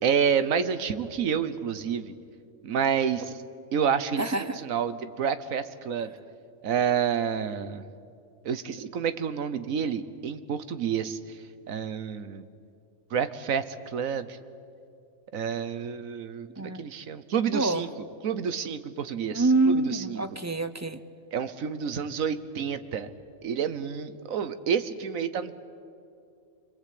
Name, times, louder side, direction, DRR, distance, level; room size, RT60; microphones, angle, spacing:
voice 1, 0.0-2.1 2.6-3.4 3.7-6.1 6.6-7.8 8.4-11.4 11.7-12.4 13.1-13.6 13.9-14.4 15.3-17.9 18.2-20.2 21.3-23.1 23.4-25.5, right 7 dB, 85° right, 12 dB, 1.4 m, -29 dB
voice 2, 4.2-4.6 16.6-16.8 17.5-17.9 19.3-21.0, right 2 dB, 20° right, 11 dB, 0.5 m, -26 dB
26.5 x 22.0 x 8.5 m, 2.5 s
omnidirectional pair, 1.4 m